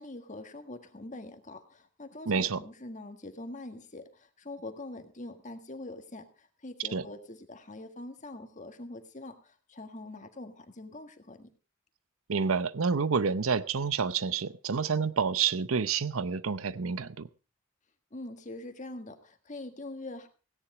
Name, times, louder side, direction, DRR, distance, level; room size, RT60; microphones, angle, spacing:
voice 1, 0.0-11.5 18.1-20.3, left 2 dB, 35° left, 1.6 m, -44 dB
voice 2, 2.3-2.6 6.9-7.1 12.3-17.3, right 5 dB, 75° right, 0.7 m, -28 dB
17.0 x 10.0 x 4.8 m
head